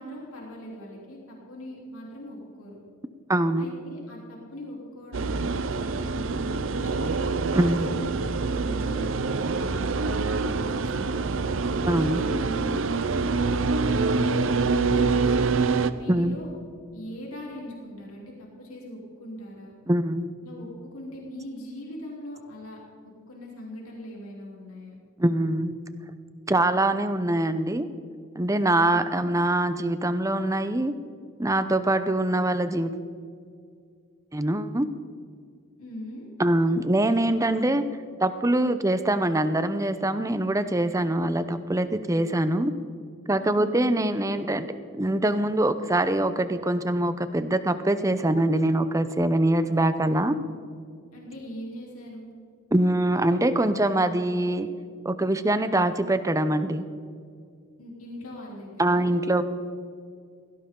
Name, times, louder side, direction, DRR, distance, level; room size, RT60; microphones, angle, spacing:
voice 1, 0.0-2.8 3.6-7.2 7.6-8.2 8.5-11.4 11.9-15.4 15.9-16.5 16.9-19.7 20.4-22.8 23.0-24.9 29.2-29.3 35.8-36.3 43.4-43.8 51.1-52.3 57.8-59.2, left 1 dB, 85° left, -3 dB, 3.5 m, -41 dB
voice 2, 3.3-3.7 7.5-7.9 11.9-12.2 16.1-16.4 19.9-20.3 25.2-25.7 26.5-27.9 28.3-30.9 31.4-32.9 34.3-34.9 36.4-37.9 38.2-42.7 43.3-50.4 52.7-54.7 55.0-56.8 58.8-59.4, right 1 dB, 15° right, 11 dB, 0.6 m, -24 dB
sound 1, 5.1-15.9, right 4 dB, 65° right, 0.6 m, -25 dB
18.0 x 16.0 x 3.8 m, 2.2 s
head